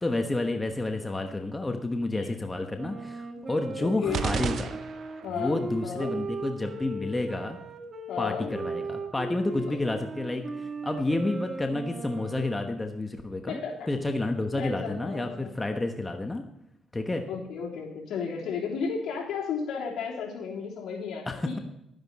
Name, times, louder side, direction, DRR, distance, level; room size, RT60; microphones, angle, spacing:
voice 1, 0.0-4.7 5.4-7.6 8.2-13.6 13.9-16.4 16.9-17.2 21.3-21.5, left 2 dB, 15° left, 5 dB, 1.1 m, -30 dB
Wind instrument woodwind instrument, 2.8-12.8, right 3 dB, 35° right, 1.9 m, -37 dB
voice 2, 3.8-4.3 5.2-6.2 8.1-8.5 13.5-13.9 14.6-15.6 17.1-21.6, left 6 dB, 75° left, -3 dB, 3.5 m, -34 dB
sound 1, 4.1-5.4, right 7 dB, 60° right, 0.7 m, -32 dB
11.5 x 10.5 x 4.1 m, 0.82 s
cardioid pair, 90°, 0 cm